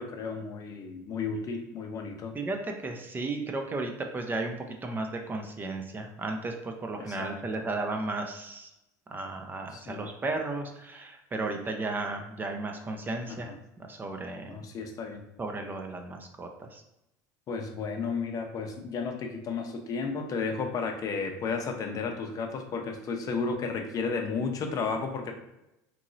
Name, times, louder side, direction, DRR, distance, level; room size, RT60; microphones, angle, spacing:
voice 1, 0.0-2.4 7.0-7.7 9.7-10.1 13.3-13.6 14.5-15.2 17.5-25.3, left 4 dB, 40° left, 4 dB, 0.5 m, -33 dB
voice 2, 2.8-8.7 9.1-13.5 13.8-14.5 15.4-16.8, right 2 dB, 20° right, 4 dB, 0.4 m, -34 dB
3.0 x 2.7 x 2.6 m, 0.89 s
supercardioid pair, 90°, 9 cm